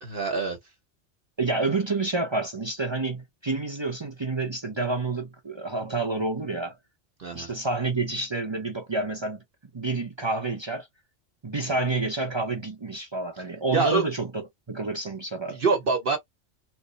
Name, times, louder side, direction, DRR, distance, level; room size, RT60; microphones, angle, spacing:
voice 1, 0.1-0.6 7.2-7.5 13.7-14.0 15.5-16.2, right 4 dB, 55° right, 1.0 m, -25 dB
voice 2, 1.4-6.7 7.3-9.4 9.7-10.9 11.4-15.6, right 3 dB, 30° right, 0.6 m, -29 dB
3.2 x 2.0 x 3.9 m
omnidirectional pair, 1.2 m